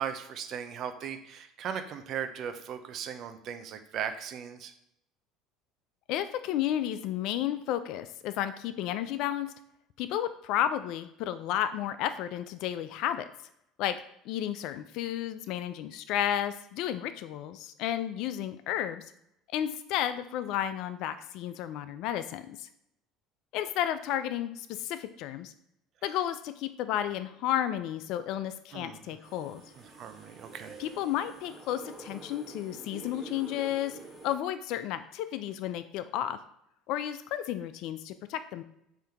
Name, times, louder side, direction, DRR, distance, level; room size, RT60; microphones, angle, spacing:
voice 1, 0.0-4.7 28.7-29.0 29.8-30.8, right 8 dB, 55° right, 8 dB, 0.5 m, -37 dB
voice 2, 6.1-9.5 10.0-13.3 13.8-14.0 14.3-19.0 19.5-22.7 23.5-25.5 26.0-29.6 30.8-34.0 34.2-36.4 36.9-38.6, left 11 dB, 65° left, 11 dB, 0.3 m, -32 dB
sound 1, 29.2-34.4, right 2 dB, 5° right, 1.3 m, -47 dB
3.6 x 2.7 x 3.4 m, 0.76 s
supercardioid pair, 85°, 0 cm